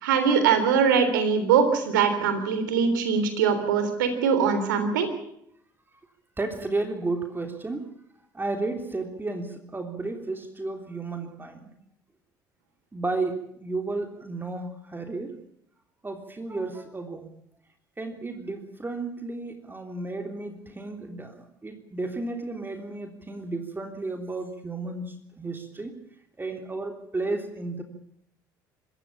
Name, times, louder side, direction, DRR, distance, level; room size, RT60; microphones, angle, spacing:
voice 1, 0.0-5.1, right 6 dB, 85° right, 9 dB, 3.6 m, -22 dB
voice 2, 6.4-7.9 8.3-11.7 12.9-15.4 16.0-17.3 18.0-21.4 21.6-26.0 26.4-27.8, right 3 dB, 20° right, 5 dB, 3.3 m, -33 dB
25.5 x 15.0 x 8.8 m, 0.72 s
hypercardioid pair, 60°, 10 cm